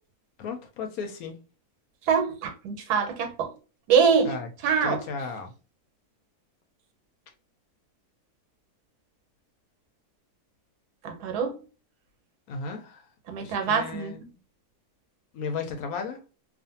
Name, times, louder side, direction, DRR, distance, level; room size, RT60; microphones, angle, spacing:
voice 1, 0.4-1.4 4.2-4.5 4.8-5.5 12.5-13.1 13.4-14.2 15.3-16.2, left 5 dB, 75° left, 1.0 m, -34 dB
voice 2, 2.1-3.5 3.9-4.3 4.6-5.0 11.0-11.6 13.3-14.1, right 6 dB, 80° right, 1.2 m, -24 dB
2.5 x 2.5 x 2.6 m
omnidirectional pair, 1.6 m